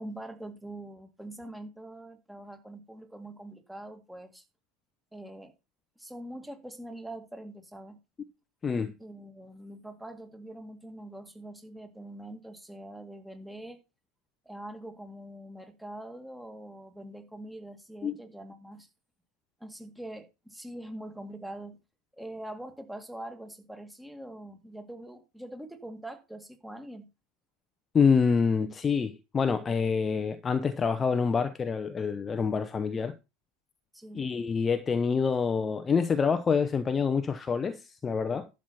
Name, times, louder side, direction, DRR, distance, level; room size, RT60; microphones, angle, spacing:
voice 1, 0.0-4.4 5.1-5.5 6.0-8.0 9.0-13.8 14.5-18.9 19.6-21.8 22.2-27.1 33.9-34.3, right 1 dB, 5° right, 2.0 m, -43 dB
voice 2, 27.9-33.2 34.1-38.5, left 5 dB, 20° left, 0.8 m, -26 dB
11.5 x 7.4 x 4.3 m
figure-of-eight pair, 80°, 0 cm